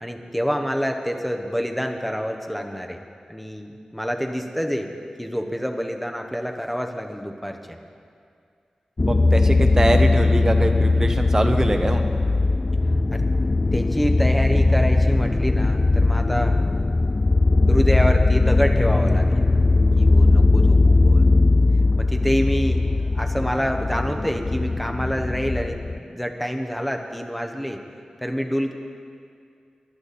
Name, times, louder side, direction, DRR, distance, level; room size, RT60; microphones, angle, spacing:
voice 1, 0.0-3.0 3.3-4.9 5.2-7.8 13.1-13.2 13.7-16.6 17.7-19.4 20.0-21.3 22.0-27.8 28.2-28.7, equal, ahead, 3 dB, 1.0 m, -27 dB
sound 1, 9.0-26.0, left 3 dB, 30° left, 0.3 m, -19 dB
voice 2, 9.1-12.0, right 1 dB, 25° right, 5 dB, 1.0 m, -23 dB
21.0 x 11.5 x 4.3 m, 2.3 s
wide cardioid pair, 120°, 2 cm